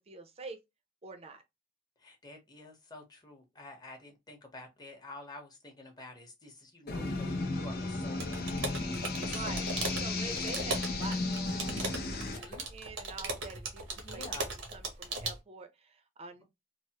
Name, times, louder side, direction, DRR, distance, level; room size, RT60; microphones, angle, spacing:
voice 1, 0.1-0.6 1.0-1.4 9.1-9.7 9.9-12.4 12.7-16.4, right 3 dB, 35° right, 0.6 m, -46 dB
voice 2, 2.0-9.9 10.2-10.7 12.0-12.6 14.0-14.5, left 2 dB, 20° left, 0.9 m, -50 dB
sound 1, 6.9-12.4, left 2 dB, 55° left, 0.6 m, -34 dB
sound 2, 8.2-15.4, right 2 dB, 80° right, 0.8 m, -38 dB
3.3 x 2.0 x 2.8 m
head